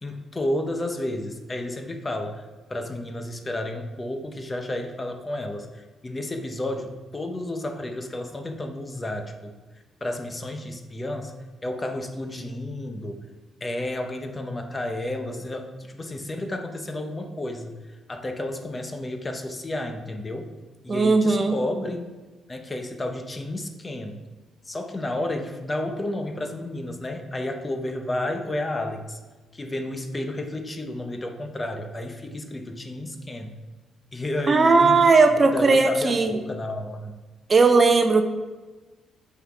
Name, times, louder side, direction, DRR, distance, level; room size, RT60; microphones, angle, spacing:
voice 1, 0.0-9.5 10.0-11.3 11.6-13.2 13.6-20.5 20.8-22.1 22.5-24.2 24.6-29.2 29.5-33.5 34.1-35.0 35.3-37.2, left 1 dB, 25° left, 5 dB, 0.9 m, -31 dB
voice 2, 20.9-21.6 34.5-36.4 37.5-38.2, right 4 dB, 35° right, 7 dB, 0.7 m, -17 dB
8.0 x 5.8 x 4.7 m, 1.2 s
cardioid pair, 90°, 0 cm